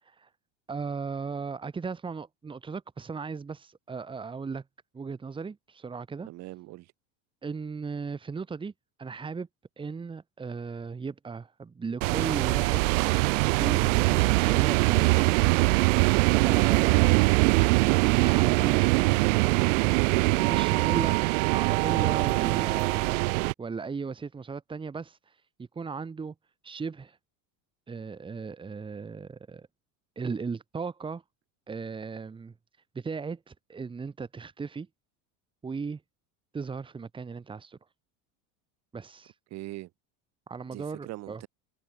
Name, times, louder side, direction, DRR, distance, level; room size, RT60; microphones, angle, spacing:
voice 1, 0.7-4.6 4.9-6.3 7.4-8.7 9.0-9.5 9.8-15.4 16.4-17.5 18.0-18.8 19.1-20.0 20.3-21.2 21.5-23.2 23.6-26.3 26.6-27.2 27.9-29.7 30.2-31.2 31.7-32.5 32.9-34.9 35.6-36.0 36.5-37.8 38.9-39.3 40.5-41.4, right 5 dB, 15° right, 4.6 m, -37 dB
voice 2, 6.2-6.9 39.5-39.9 40.7-41.5, right 18 dB, 45° right, 5.8 m, -41 dB
sound 1, 12.0-23.5, right 27 dB, 80° right, 0.9 m, -23 dB
cardioid pair, 170°, 38 cm